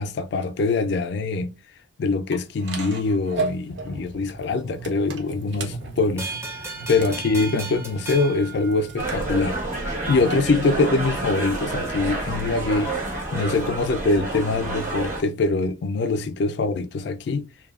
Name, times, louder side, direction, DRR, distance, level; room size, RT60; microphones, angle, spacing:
voice 1, 0.0-1.5 2.0-6.3 6.9-9.6 9.8-12.9 13.3-17.5, left 3 dB, 65° left, 0.3 m, -23 dB
sound 1, 2.3-9.4, right 3 dB, 65° right, 0.6 m, -36 dB
sound 2, 6.2-9.4, right 3 dB, 15° right, 0.5 m, -35 dB
sound 3, 9.0-15.2, right 2 dB, 45° right, 1.1 m, -29 dB
2.7 x 2.2 x 2.3 m
head